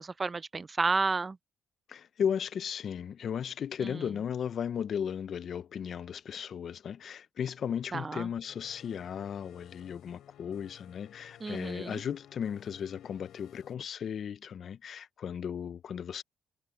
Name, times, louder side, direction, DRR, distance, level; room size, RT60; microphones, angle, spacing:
voice 1, 0.0-1.4 7.9-8.3 11.4-12.0, right 4 dB, 30° right, 0.5 m, -31 dB
voice 2, 1.9-16.2, left 8 dB, 55° left, 0.5 m, -35 dB
sound 1, 8.5-13.8, left 11 dB, 75° left, 3.8 m, -56 dB
cardioid pair, 90°, 0 cm